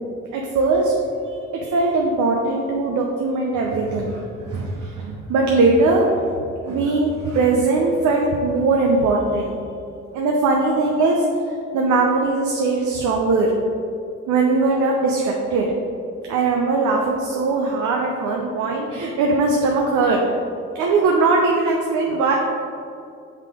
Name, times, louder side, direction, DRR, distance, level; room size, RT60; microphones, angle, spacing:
voice 1, 0.3-0.9 1.3-6.3 6.6-9.6 10.1-11.2 11.7-13.5 14.3-15.7 16.3-20.2 20.8-22.4, right 3 dB, 75° right, 0 dB, 0.7 m, -20 dB
5.6 x 3.7 x 5.0 m, 2.5 s
cardioid pair, 90°, 30 cm